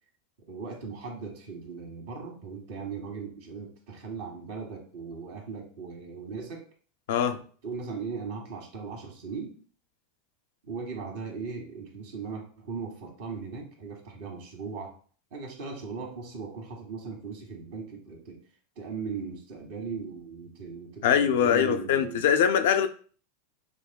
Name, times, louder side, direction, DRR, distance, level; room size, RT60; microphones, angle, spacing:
voice 1, 0.5-6.6 7.3-9.6 10.6-14.9 15.3-18.4 18.8-22.3, right 5 dB, 65° right, 1 dB, 1.5 m, -38 dB
voice 2, 21.0-22.9, left 8 dB, 65° left, 7 dB, 0.5 m, -22 dB
6.3 x 2.7 x 2.2 m, 0.43 s
hypercardioid pair, 95°, 0 cm